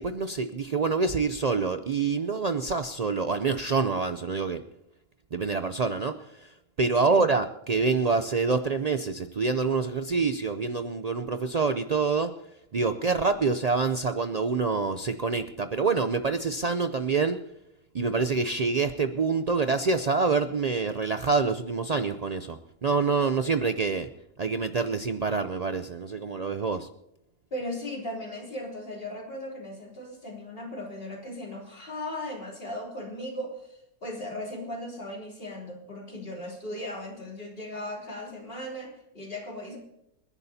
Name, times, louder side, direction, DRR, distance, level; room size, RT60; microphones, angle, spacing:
voice 1, 0.0-4.6 5.3-12.4 12.7-17.4 17.9-24.1 24.4-26.9, right 4 dB, 85° right, 9 dB, 0.3 m, -26 dB
voice 2, 27.5-39.8, left 1 dB, 40° left, -1 dB, 3.4 m, -37 dB
28.0 x 11.0 x 2.8 m, 0.82 s
omnidirectional pair, 1.5 m